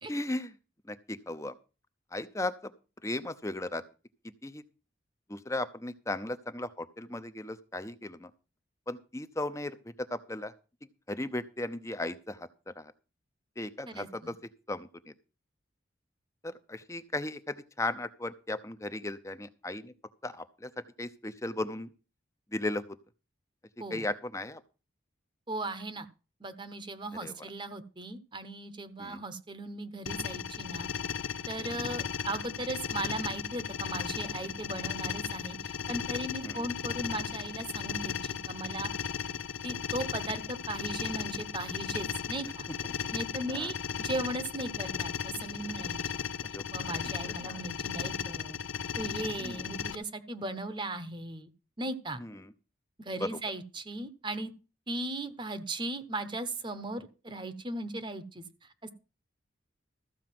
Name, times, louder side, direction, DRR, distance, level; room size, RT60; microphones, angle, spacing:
voice 1, 0.1-0.5 0.9-1.6 2.1-2.7 3.0-3.8 4.4-4.6 5.3-8.3 8.9-10.5 11.1-12.5 12.8-12.9 13.6-14.3 14.7-14.9 16.4-19.9 20.2-20.7 21.0-21.9 22.5-22.8 23.9-24.6 27.2-27.3 29.0-29.2 31.7-31.9 36.4-36.6 43.5-43.7 46.5-46.9 47.4-47.6 49.4-49.7 52.2-52.5 53.2-53.3, left 2 dB, 15° left, 12 dB, 0.7 m, -36 dB
voice 2, 13.9-14.3 23.8-24.1 25.5-26.1 26.4-30.9 31.5-38.9 39.6-42.7 43.1-48.6 49.0-51.5 51.8-52.2 53.0-54.5 54.9-58.9, right 2 dB, 25° right, 11 dB, 0.9 m, -37 dB
sound 1, 30.1-49.9, left 7 dB, 90° left, 0.7 m, -36 dB
14.0 x 4.9 x 7.6 m, 0.33 s
head